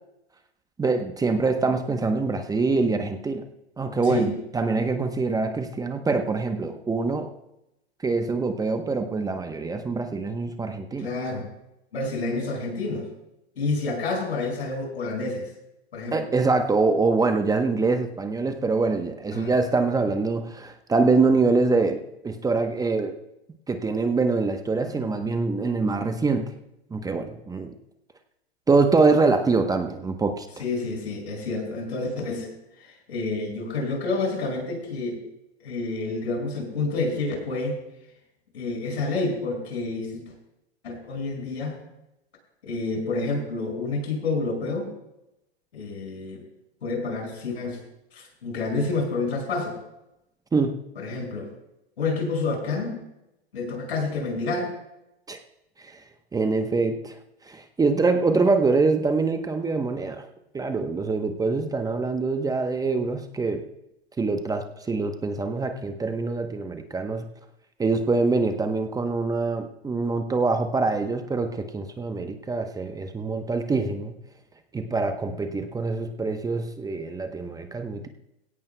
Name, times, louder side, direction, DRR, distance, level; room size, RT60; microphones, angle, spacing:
voice 1, 0.8-3.4 3.8-7.3 8.0-11.1 16.1-23.2 23.7-26.5 26.9-27.7 28.7-30.5 50.5-50.8 55.3-55.4 55.8-56.0 56.3-57.2 57.5-60.2 60.5-63.6 64.2-67.2 67.8-74.1 74.7-78.1, right 3 dB, 10° right, 6 dB, 0.9 m, -24 dB
voice 2, 11.0-11.5 11.9-13.0 13.6-15.5 15.9-16.2 19.3-19.5 30.6-32.5 32.8-35.2 35.6-37.8 38.5-40.3 40.8-41.8 42.6-44.9 45.7-46.4 46.8-47.8 48.1-49.8 51.0-51.5 52.0-53.0 53.5-54.7, left 3 dB, 80° left, 1 dB, 5.7 m, -29 dB
20.5 x 17.0 x 2.2 m, 0.89 s
hypercardioid pair, 110°, 32 cm